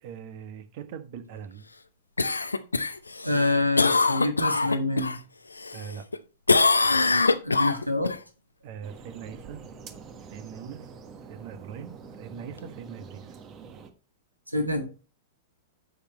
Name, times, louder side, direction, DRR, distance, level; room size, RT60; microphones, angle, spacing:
voice 1, 0.0-1.6 5.7-6.0 8.6-9.6 10.2-10.9 11.3-11.9 12.2-13.4, right 7 dB, 45° right, 1.5 m, -41 dB
Cough, 2.2-5.2 5.6-6.2 6.5-8.2 12.6-12.7, left 3 dB, 80° left, 0.7 m, -23 dB
voice 2, 3.2-5.1 7.4-8.1 14.5-14.8, left 2 dB, 90° right, 1.6 m, -26 dB
sound 1, 8.8-13.9, right 5 dB, 30° right, 1.4 m, -46 dB
10.0 x 7.0 x 3.0 m
figure-of-eight pair, 100°, 0 cm